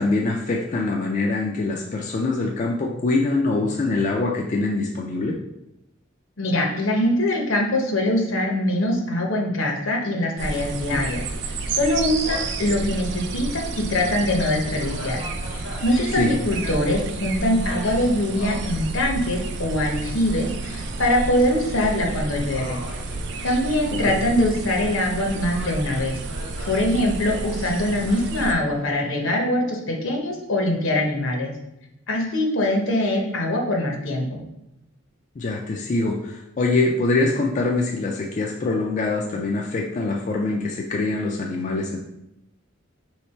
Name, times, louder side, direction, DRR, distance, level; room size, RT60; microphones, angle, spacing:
voice 1, 0.0-5.4 10.9-11.0 16.2-16.3 23.9-24.2 35.4-42.0, left 2 dB, 35° left, -1 dB, 0.3 m, -24 dB
voice 2, 6.4-11.2 11.7-15.2 15.8-22.8 23.4-26.2 26.7-31.5 32.1-34.4, left 1 dB, 70° left, 1 dB, 0.8 m, -23 dB
sound 1, 10.4-28.5, right 3 dB, 60° right, 0.4 m, -31 dB
Gull seagull, 12.2-12.6 13.2-13.3 13.8-16.7 17.6-18.8 19.3-19.8 20.6-21.3 21.7-21.9 22.5-24.0 24.3-25.1 25.4-26.8 28.0-29.1, left 1 dB, 90° left, 1.6 m, -41 dB
3.2 x 3.2 x 4.3 m, 0.88 s
head